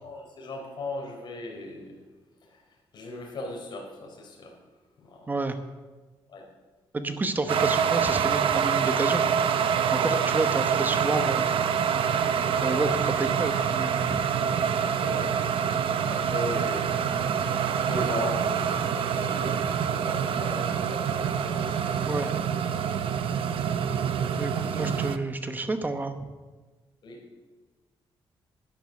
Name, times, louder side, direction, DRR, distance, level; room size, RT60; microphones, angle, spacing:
voice 1, 0.0-2.0 2.4-2.6 2.9-4.6 5.0-5.3 6.3-6.5 10.0-10.3 12.0-12.1 12.6-13.1 14.8-15.4 15.8-22.4 27.0-27.3, left 2 dB, 50° left, 0 dB, 4.0 m, -38 dB
voice 2, 5.3-5.6 6.9-9.2 9.9-11.5 12.6-12.9 13.2-14.2 22.0-22.3 24.4-26.3, right 3 dB, 20° right, 8 dB, 1.0 m, -29 dB
sound 1, 7.5-25.2, right 7 dB, 70° right, 0.7 m, -26 dB
11.5 x 10.5 x 6.7 m, 1.3 s
cardioid pair, 145°, 10 cm